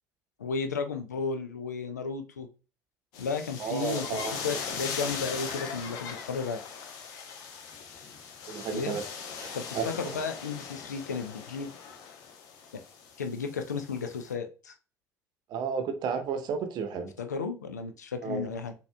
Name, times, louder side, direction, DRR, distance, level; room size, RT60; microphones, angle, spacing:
voice 1, 0.4-2.5 3.2-6.6 8.7-9.0 9.5-11.7 13.2-14.7 17.2-18.7, left 5 dB, 85° left, 0.5 m, -34 dB
sound 1, 3.1-14.3, left 6 dB, 65° left, 0.9 m, -40 dB
voice 2, 3.6-4.4 8.5-9.0 9.4-9.9 15.5-17.1 18.2-18.5, right 6 dB, 55° right, 0.8 m, -32 dB
6.3 x 2.8 x 2.3 m
figure-of-eight pair, 50°, 9 cm